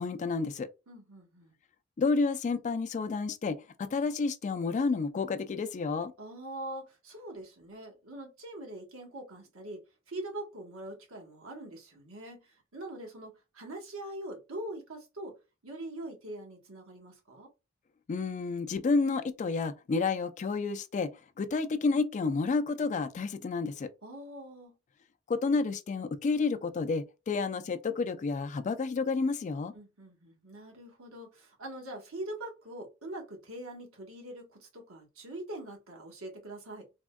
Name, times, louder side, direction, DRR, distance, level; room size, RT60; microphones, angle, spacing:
voice 1, 0.0-0.7 2.0-6.1 18.1-21.1 21.4-23.9 25.3-29.7, left 4 dB, 35° left, 0.3 m, -30 dB
voice 2, 0.9-1.5 6.2-15.4 15.6-17.5 24.0-24.7 29.7-36.9, right 1 dB, 85° right, 1.1 m, -43 dB
3.5 x 2.1 x 2.2 m
head